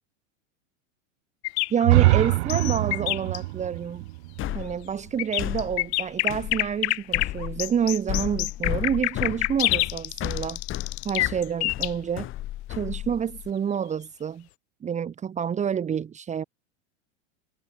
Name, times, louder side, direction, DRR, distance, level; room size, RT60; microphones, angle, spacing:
sound 1, 1.4-3.4 5.2-11.9, left 21 dB, 60° left, 2.1 m, -27 dB
voice 1, 1.7-4.0 4.5-10.6 11.0-12.3 12.7-14.5 14.8-16.4, right 8 dB, 20° right, 1.8 m, -28 dB
sound 2, 1.8-5.7, right 20 dB, 60° right, 2.9 m, -24 dB
sound 3, 4.4-13.5, left 14 dB, 35° left, 3.3 m, -34 dB
supercardioid pair, 135°, 37 cm